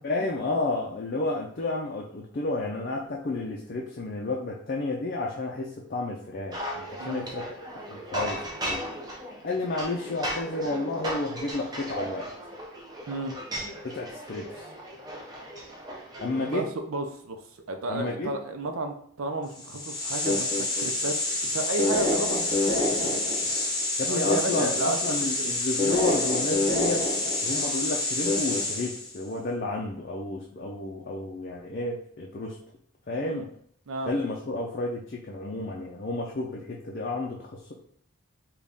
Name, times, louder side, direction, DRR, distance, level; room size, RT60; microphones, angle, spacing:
voice 1, 0.0-8.9 9.4-12.2 13.8-14.7 16.2-16.7 17.9-18.3 24.0-27.1 27.4-32.6 33.1-33.5 34.1-37.7, left 2 dB, 45° left, -2 dB, 0.4 m, -31 dB
sound 1, 6.5-16.6, equal, 20° right, 0.6 m, -36 dB
voice 2, 13.1-13.4 16.5-23.5 24.1-25.5 33.2-33.5 33.9-34.1, right 2 dB, 80° right, 5 dB, 0.6 m, -33 dB
sound 2, 19.6-29.1, left 2 dB, 20° left, 0.8 m, -27 dB
4.0 x 2.3 x 3.5 m, 0.64 s
head